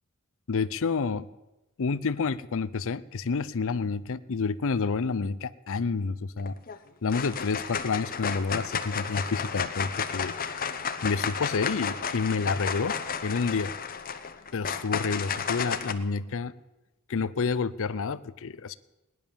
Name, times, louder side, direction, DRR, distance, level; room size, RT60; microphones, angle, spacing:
voice 1, 0.5-1.3 1.8-6.5 7.0-10.6 11.0-13.7 14.5-16.5 17.1-18.8, left 4 dB, 65° left, 15 dB, 0.6 m, -29 dB
sound 1, 6.4-6.8 7.1-15.9, left 6 dB, 40° left, 0.9 m, -32 dB
18.0 x 11.0 x 7.0 m, 1.0 s
head